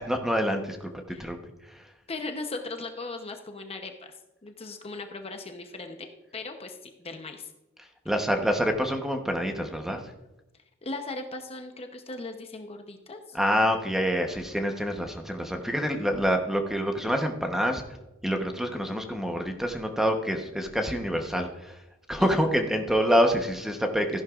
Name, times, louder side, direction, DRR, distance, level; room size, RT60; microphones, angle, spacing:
voice 1, 0.1-1.4 1.7-1.8 8.0-10.0 13.3-17.8 18.2-21.8 22.1-24.2, equal, ahead, 4 dB, 0.9 m, -26 dB
voice 2, 2.1-4.1 4.4-7.5 10.8-13.4 22.2-22.5, left 3 dB, 30° left, 5 dB, 0.8 m, -38 dB
14.5 x 11.0 x 2.4 m, 0.96 s
head